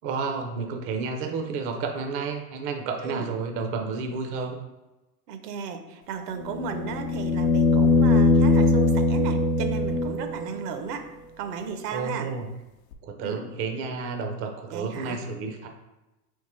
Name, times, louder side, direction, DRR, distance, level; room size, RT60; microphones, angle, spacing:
voice 1, 0.0-4.6 11.9-12.5 13.0-15.7, right 4 dB, 30° right, 4 dB, 0.4 m, -31 dB
voice 2, 5.3-11.1 11.4-12.3 13.2-13.4 14.7-15.2, right 6 dB, 75° right, 7 dB, 0.8 m, -34 dB
sound 1, 6.4-10.5 12.9-13.0, left 2 dB, 85° left, 0.7 m, -21 dB
3.7 x 2.9 x 4.2 m, 1.0 s
supercardioid pair, 120°, 48 cm